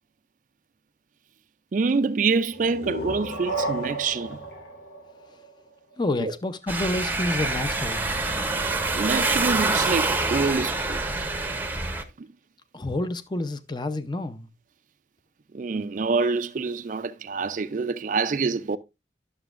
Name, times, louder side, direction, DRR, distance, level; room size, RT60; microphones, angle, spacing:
voice 1, 1.7-4.4 6.2-6.3 9.0-11.0 12.2-12.3 15.5-18.8, right 4 dB, 45° right, 0.4 m, -26 dB
sound 1, 2.5-6.1, right 1 dB, 75° left, 1.8 m, -33 dB
voice 2, 6.0-8.1 12.7-14.5, left 2 dB, 25° left, 0.6 m, -29 dB
sound 2, 6.7-12.0, right 3 dB, 10° right, 0.7 m, -26 dB
11.0 x 6.9 x 2.5 m
head